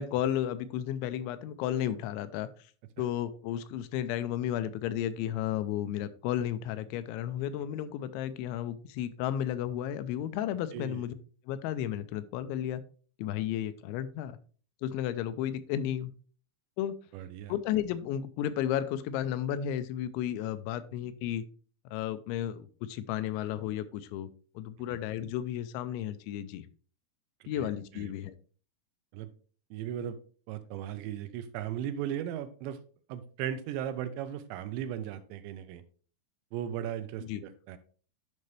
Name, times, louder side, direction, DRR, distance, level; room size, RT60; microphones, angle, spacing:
voice 1, 0.0-2.5 3.0-11.1 11.5-12.8 13.2-14.4 14.8-16.1 16.8-17.0 17.5-21.4 21.9-24.3 24.6-26.7 27.5-28.3 37.2-37.4, left 11 dB, 90° left, 13 dB, 3.0 m, -33 dB
voice 2, 10.7-11.0 17.1-17.5 27.5-27.7 27.9-28.1 29.1-29.3 29.7-30.2 30.5-32.8 33.1-35.8 36.5-37.8, right 10 dB, 80° right, 10 dB, 2.8 m, -37 dB
10.5 x 5.5 x 3.2 m, 0.41 s
omnidirectional pair, 5.3 m